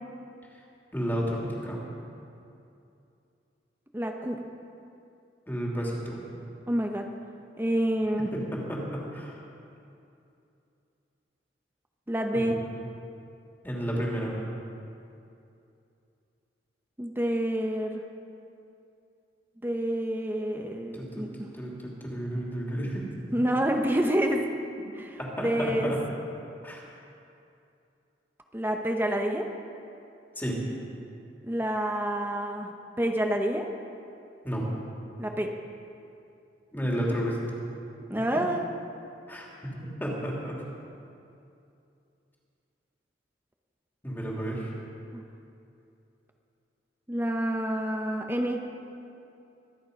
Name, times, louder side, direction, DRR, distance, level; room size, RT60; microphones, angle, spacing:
voice 1, 0.9-1.9 5.5-6.3 8.5-9.4 12.3-12.4 13.6-14.4 20.9-21.2 21.5-23.4 25.2-26.0 26.6-26.8 30.4-30.6 34.4-34.6 36.7-37.4 38.3-38.4 39.3-39.5 39.8-40.6 44.0-44.7, equal, 10° left, -3 dB, 2.8 m, -32 dB
voice 2, 3.9-4.4 6.7-7.1 7.6-8.3 12.1-12.6 17.0-18.0 19.6-21.5 23.3-24.5 25.0-25.9 28.5-29.5 31.4-32.7 33.0-33.7 35.2-35.5 38.1-38.7 45.1-45.2 47.1-48.7, right 1 dB, 10° right, 3 dB, 0.9 m, -28 dB
24.5 x 9.6 x 5.3 m, 2.7 s
head